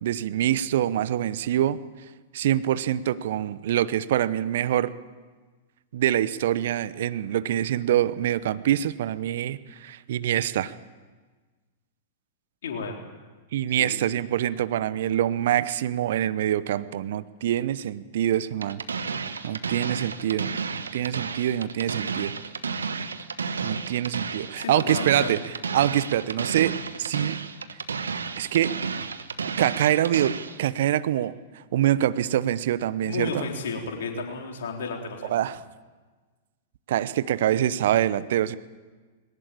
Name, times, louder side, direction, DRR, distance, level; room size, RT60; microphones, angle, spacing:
voice 1, 0.0-1.8 2.3-4.9 5.9-10.7 13.5-18.8 19.4-20.5 20.9-22.3 23.6-27.4 28.4-28.7 29.6-31.3 31.7-33.5 35.3-35.6 36.9-38.6, right 11 dB, 60° right, 16 dB, 0.9 m, -25 dB
voice 2, 12.6-13.0 13.8-14.0 24.6-25.4 33.0-35.4, left 4 dB, 65° left, 2 dB, 4.0 m, -32 dB
sound 1, 18.6-30.6, right 5 dB, 75° right, 1.3 m, -32 dB
21.0 x 18.5 x 8.7 m, 1.4 s
figure-of-eight pair, 100°, 0 cm